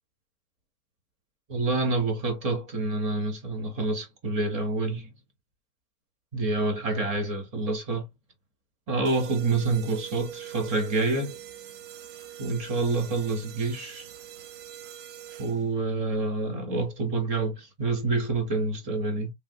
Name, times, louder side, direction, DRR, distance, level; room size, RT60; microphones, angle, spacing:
voice 1, 1.5-5.1 6.3-8.1 8.9-11.4 12.4-14.1 15.4-19.3, right 3 dB, 15° right, 0.5 m, -27 dB
sound 1, 9.0-15.8, right 12 dB, 55° right, 0.7 m, -44 dB
3.2 x 2.4 x 2.6 m
supercardioid pair, 155°, 42 cm